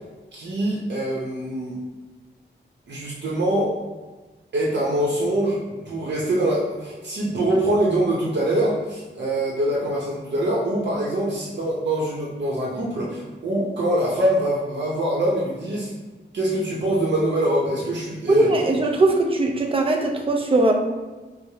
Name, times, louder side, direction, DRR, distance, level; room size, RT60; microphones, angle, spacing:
voice 1, 0.3-1.8 2.9-3.7 4.5-15.9 16.3-18.5, right 1 dB, 75° right, -5 dB, 0.7 m, -24 dB
voice 2, 18.3-20.7, right 2 dB, 30° right, 2 dB, 0.5 m, -20 dB
4.6 x 2.1 x 2.8 m, 1.3 s
wide cardioid pair, 130°, 18 cm